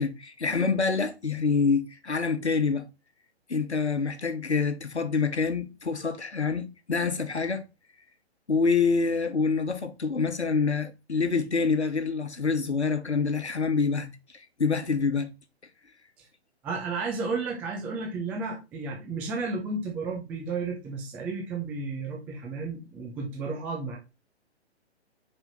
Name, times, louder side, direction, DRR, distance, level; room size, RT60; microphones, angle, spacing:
voice 1, 0.0-2.9 3.5-7.6 8.5-15.3, left 4 dB, 80° left, 1.3 m, -26 dB
voice 2, 16.6-24.0, right 4 dB, 5° right, 0.5 m, -33 dB
5.0 x 4.6 x 5.6 m
figure-of-eight pair, 130°, 33 cm